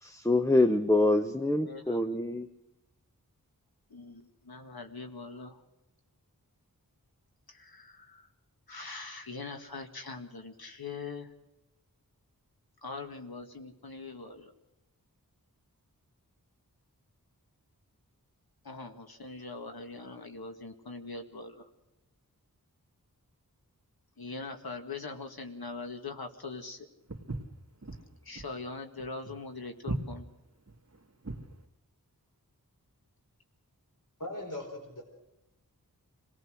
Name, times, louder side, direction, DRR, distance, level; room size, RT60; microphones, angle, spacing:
voice 1, 0.0-2.5, left 2 dB, 10° left, 8 dB, 0.9 m, -25 dB
voice 2, 1.6-2.0 3.9-5.6 7.5-8.3 8.7-11.3 12.8-14.5 18.6-21.7 24.2-26.9 28.2-30.3, left 3 dB, 85° left, 5 dB, 2.0 m, -42 dB
Walk footsteps, 27.1-31.6, right 2 dB, 45° right, 2.0 m, -38 dB
voice 3, 34.2-35.0, left 1 dB, 60° left, 3 dB, 4.6 m, -39 dB
26.0 x 18.0 x 6.4 m, 0.93 s
wide cardioid pair, 50°, 36 cm